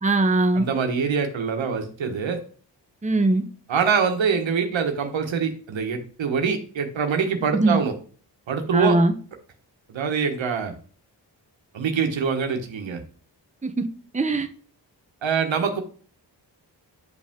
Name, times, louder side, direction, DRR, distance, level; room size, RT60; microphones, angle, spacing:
voice 1, 0.0-0.7 3.0-3.4 7.5-7.8 8.7-9.1 13.6-13.7 14.1-14.5, right 2 dB, 15° right, 6 dB, 0.9 m, -20 dB
voice 2, 0.5-2.4 3.7-7.9 8.5-9.0 9.9-10.7 11.7-13.0 15.2-15.8, right 6 dB, 85° right, 5 dB, 1.4 m, -24 dB
10.5 x 5.1 x 3.7 m, 0.43 s
cardioid pair, 65°, 45 cm